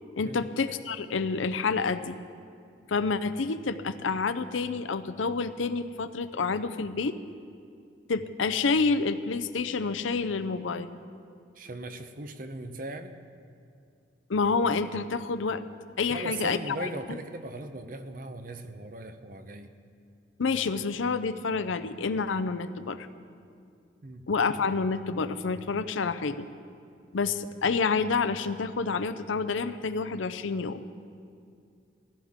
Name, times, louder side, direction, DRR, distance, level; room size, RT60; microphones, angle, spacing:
voice 1, 0.2-2.2 2.9-7.2 8.1-10.9 14.3-15.6 16.0-16.9 20.4-23.1 24.3-26.5 27.1-30.8, left 4 dB, 90° left, 12 dB, 0.6 m, -28 dB
voice 2, 11.6-13.2 16.1-19.7 24.0-24.2, right 2 dB, 45° right, 9 dB, 0.7 m, -38 dB
17.5 x 14.5 x 3.7 m, 2.4 s
head